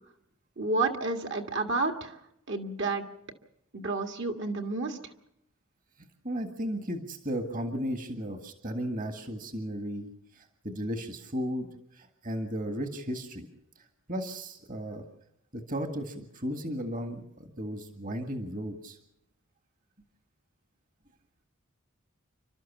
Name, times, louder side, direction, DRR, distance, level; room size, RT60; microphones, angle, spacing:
voice 1, 0.6-2.2 2.5-3.0 3.7-5.0, right 3 dB, 55° right, 4 dB, 1.8 m, -30 dB
voice 2, 6.2-13.5 14.1-15.0 15.5-19.0, equal, 35° right, 6 dB, 1.7 m, -35 dB
29.0 x 12.5 x 7.3 m, 0.77 s
head